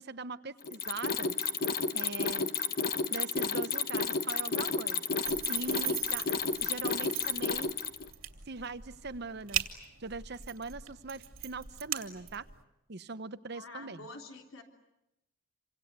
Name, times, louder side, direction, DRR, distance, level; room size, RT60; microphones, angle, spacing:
voice 1, 0.0-1.4 1.9-2.5 3.1-5.0 5.5-6.3 6.6-7.7 8.5-9.6 10.0-12.4 12.9-14.1, right 3 dB, 55° right, 12 dB, 1.0 m, -41 dB
Mechanisms, 0.6-8.1, left 5 dB, 45° left, 1.3 m, -31 dB
sound 1, 5.2-12.6, right 10 dB, 85° right, 2.6 m, -40 dB
voice 2, 13.5-14.6, left 3 dB, 90° left, 2 dB, 3.5 m, -47 dB
28.5 x 25.5 x 8.2 m, 0.92 s
head